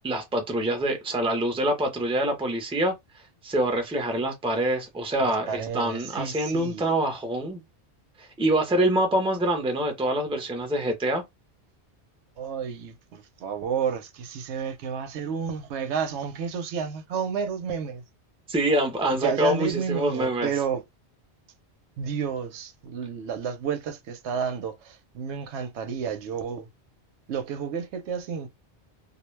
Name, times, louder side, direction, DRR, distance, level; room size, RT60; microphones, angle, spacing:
voice 1, 0.0-2.9 3.4-7.6 8.2-11.2 18.5-20.5, right 1 dB, 5° right, 0.5 m, -25 dB
voice 2, 5.2-6.9 12.4-18.0 19.2-20.8 22.0-26.7 27.3-28.5, right 7 dB, 85° right, 0.9 m, -31 dB
2.3 x 2.1 x 3.1 m
omnidirectional pair, 1.2 m